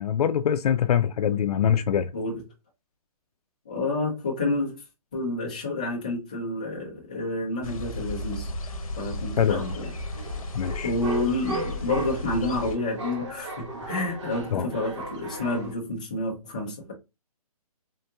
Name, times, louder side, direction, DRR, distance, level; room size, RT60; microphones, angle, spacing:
voice 1, 0.0-2.1 9.4-9.6 10.5-10.9 14.5-14.7, left 9 dB, 85° left, 0.4 m, -23 dB
voice 2, 3.7-4.8 5.1-8.5 9.0-9.9 10.8-16.9, left 2 dB, 15° left, 0.4 m, -29 dB
sound 1, 7.6-12.8, left 2 dB, 65° left, 0.8 m, -34 dB
sound 2, 9.6-15.7, right 2 dB, 50° right, 1.0 m, -37 dB
3.7 x 2.7 x 2.2 m
hypercardioid pair, 180°, 19 cm